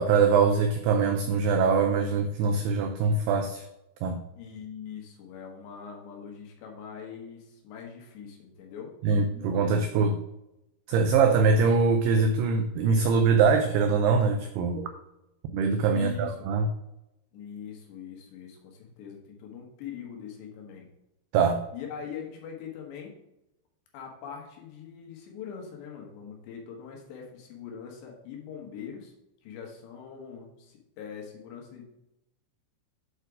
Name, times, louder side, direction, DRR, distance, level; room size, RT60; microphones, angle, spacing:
voice 1, 0.0-3.6 4.0-4.2 9.0-10.2 10.9-14.9 15.5-16.7 21.3-21.6, right 5 dB, 90° right, 6 dB, 2.3 m, -23 dB
voice 2, 4.4-8.9 15.9-16.5 17.3-20.9 21.7-23.2 23.9-29.1 29.4-31.8, left 7 dB, 75° left, 1 dB, 3.5 m, -42 dB
8.1 x 4.4 x 4.8 m, 0.88 s
omnidirectional pair, 5.3 m